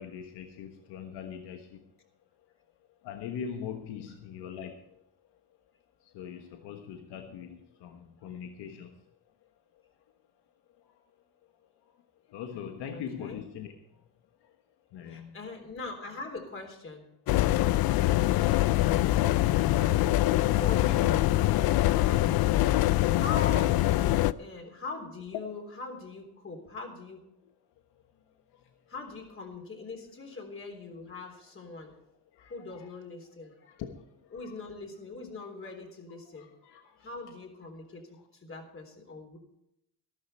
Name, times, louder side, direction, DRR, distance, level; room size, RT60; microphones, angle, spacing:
voice 1, 0.0-1.8 3.0-4.8 6.1-8.9 12.3-13.7 14.9-15.4 32.4-32.9 33.7-33.9 34.3-34.5 35.6-35.7 36.3-37.1, left 8 dB, 85° left, 4 dB, 1.4 m, -41 dB
voice 2, 12.9-13.4 15.1-17.1 19.7-20.0 20.5-21.2 21.8-22.8 23.1-23.8 24.4-27.3 28.9-31.9 32.5-33.7 34.3-36.5 37.0-39.4, left 3 dB, 30° left, 3 dB, 3.7 m, -42 dB
sound 1, 17.3-24.3, left 15 dB, 65° left, 0.5 m, -24 dB
13.5 x 12.5 x 4.4 m, 0.81 s
cardioid pair, 115°, 40 cm